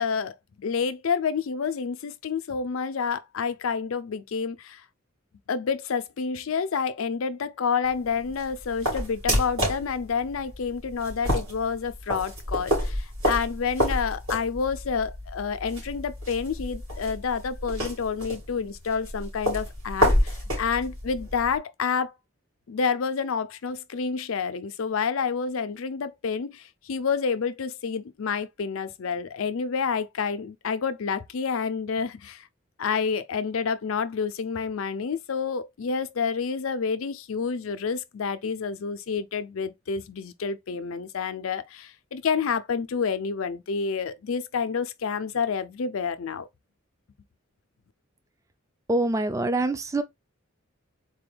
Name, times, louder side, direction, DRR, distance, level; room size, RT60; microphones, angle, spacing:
voice 1, 0.0-4.8 5.5-22.1 22.7-32.5 32.8-46.5, left 6 dB, 85° left, 0.5 m, -29 dB
sound 1, 7.8-21.6, equal, 80° right, 2.8 m, -29 dB
voice 2, 48.9-50.0, right 2 dB, 15° right, 0.3 m, -25 dB
4.1 x 2.2 x 3.3 m
head